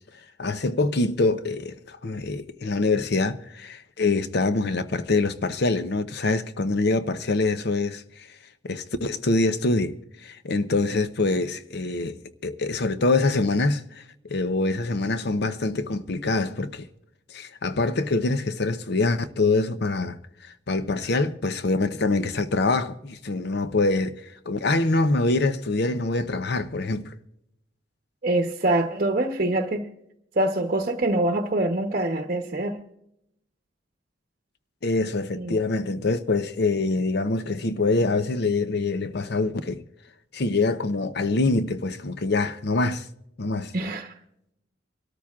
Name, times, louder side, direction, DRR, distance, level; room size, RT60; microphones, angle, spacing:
voice 1, 0.4-8.3 8.6-16.9 17.3-27.1 34.8-39.8 40.3-43.1 43.4-43.7, left 3 dB, 60° left, 0.7 m, -25 dB
voice 2, 28.2-29.9 30.4-32.8 35.3-35.6 43.7-44.1, right 1 dB, 45° right, 0.9 m, -24 dB
25.0 x 13.0 x 2.4 m
head